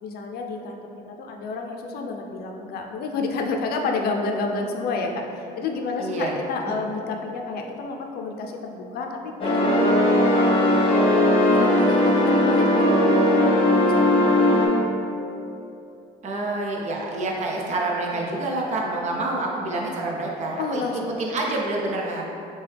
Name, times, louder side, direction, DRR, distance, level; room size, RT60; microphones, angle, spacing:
voice 1, 0.0-13.4 13.7-14.8 18.1-18.2 19.1-19.4 20.6-21.1, left 3 dB, 65° left, 2 dB, 0.5 m, -30 dB
voice 2, 6.0-6.3 6.7-6.8 16.2-20.8 21.2-22.2, right 2 dB, 45° right, -2 dB, 0.7 m, -27 dB
sound 1, 9.4-14.7, left 1 dB, 30° left, 1.1 m, -18 dB
5.6 x 2.3 x 3.3 m, 2.7 s
cardioid pair, 110°, 17 cm